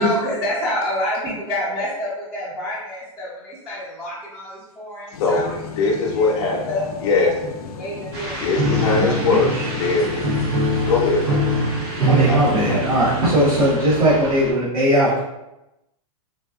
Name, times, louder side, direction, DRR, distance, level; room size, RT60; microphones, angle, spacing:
voice 1, 0.0-5.5 6.1-6.3 6.7-7.3 7.8-8.4, left 1 dB, 5° right, -13 dB, 0.5 m, -28 dB
sound 1, 5.1-13.9, left 6 dB, 85° left, 0.4 m, -36 dB
voice 2, 5.2-7.3 8.0-8.1 8.4-9.5 9.8-10.4 10.9-11.5 12.0-13.0, left 3 dB, 55° left, -3 dB, 0.7 m, -22 dB
sound 2, 8.1-14.5, right 1 dB, 45° right, 1.2 m, -34 dB
Piano, 8.6-14.5, right 1 dB, 90° right, 0.7 m, -23 dB
voice 3, 8.9-9.7 12.1-15.2, equal, 75° right, -7 dB, 1.0 m, -19 dB
4.0 x 2.4 x 2.3 m, 0.93 s
supercardioid pair, 165°, 19 cm